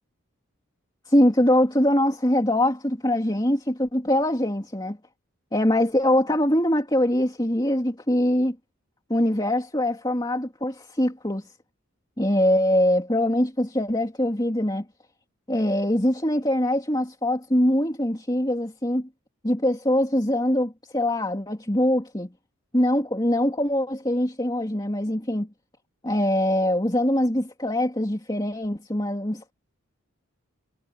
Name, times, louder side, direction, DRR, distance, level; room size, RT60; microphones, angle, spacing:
voice 1, 1.1-5.0 5.5-8.6 9.1-11.5 12.2-14.8 15.5-19.1 19.4-22.3 22.7-25.5 26.0-29.5, left 1 dB, 20° left, 2.9 m, -23 dB
head